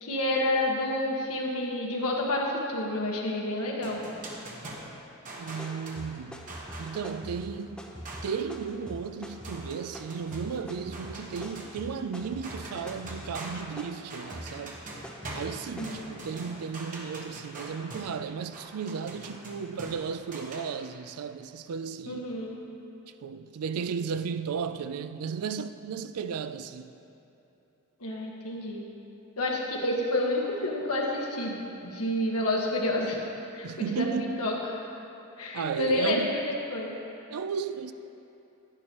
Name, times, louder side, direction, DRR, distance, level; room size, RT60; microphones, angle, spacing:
voice 1, 0.0-4.0 15.8-16.1 22.1-22.5 28.0-28.8 29.4-33.2 33.5-34.8 35.4-36.4 36.7-36.9, left 1 dB, 75° left, 1.4 m, -29 dB
sound 1, 3.8-7.1 8.1-8.5 9.4-12.1 12.4-20.6, right 1 dB, 35° right, 1.1 m, -43 dB
voice 2, 5.4-6.5 6.8-7.8 8.2-14.8 15.3-22.3 23.2-26.9 33.6-34.3 35.5-36.3 37.3-37.9, right 6 dB, 80° right, 0.4 m, -34 dB
sound 2, 5.5-15.9, equal, 5° left, 0.7 m, -44 dB
10.5 x 10.5 x 3.0 m
head